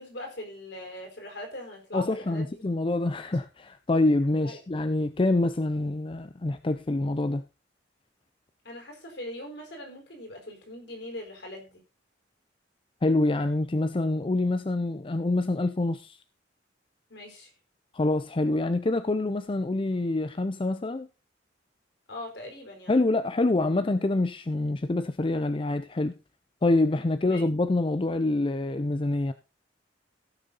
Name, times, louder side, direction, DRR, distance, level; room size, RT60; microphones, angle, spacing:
voice 1, 0.0-2.6 4.4-4.6 8.6-11.8 17.1-17.5 22.1-23.0 27.2-27.4, left 1 dB, 65° left, 4.5 m, -41 dB
voice 2, 1.9-7.4 13.0-16.2 17.9-21.1 22.9-26.2 26.6-29.3, left 2 dB, 30° left, 0.5 m, -26 dB
16.0 x 6.7 x 3.9 m
head